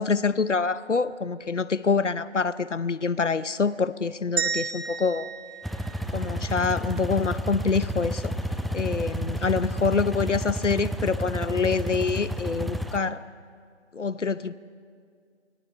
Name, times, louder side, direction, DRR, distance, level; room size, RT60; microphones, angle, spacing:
voice 1, 0.0-5.3 6.1-8.3 8.7-13.2 13.9-14.5, left 5 dB, 80° left, 16 dB, 0.8 m, -26 dB
sound 1, 4.4-6.6, right 6 dB, 55° right, 2.6 m, -32 dB
sound 2, 5.6-13.0, equal, ahead, 0.4 m, -31 dB
28.5 x 21.5 x 4.5 m, 2.2 s
figure-of-eight pair, 175°, 36 cm